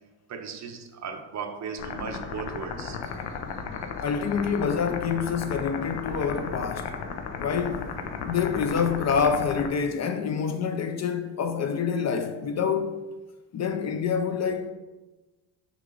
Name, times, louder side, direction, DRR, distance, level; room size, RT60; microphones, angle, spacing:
voice 1, 0.3-3.1 3.7-3.8, right 6 dB, 40° right, 0.7 m, -37 dB
sound 1, 1.8-9.7, left 6 dB, 75° left, 0.8 m, -35 dB
voice 2, 4.0-6.9 7.4-7.9 8.2-13.0 13.5-14.7, left 6 dB, 40° left, 0.5 m, -27 dB
6.3 x 4.7 x 3.9 m
cardioid pair, 130°, 43 cm